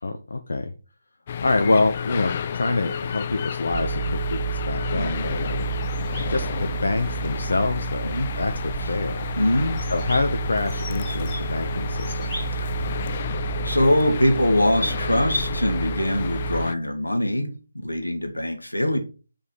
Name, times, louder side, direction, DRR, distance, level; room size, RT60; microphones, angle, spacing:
voice 1, 0.0-0.7 1.4-5.7 6.3-9.3 9.9-12.4, left 3 dB, 55° left, 0.8 m, -26 dB
sound 1, 1.3-16.7, left 8 dB, 30° left, 0.3 m, -31 dB
sound 2, 3.7-16.7, right 11 dB, 30° right, 0.5 m, -31 dB
voice 2, 4.9-5.3 8.1-8.3 8.8-8.9 9.4-9.8 13.6-19.0, left 1 dB, 80° left, 1.6 m, -23 dB
sound 3, 5.1-13.2, left 1 dB, 10° left, 3.0 m, -43 dB
5.2 x 4.9 x 6.0 m
figure-of-eight pair, 150°, 0 cm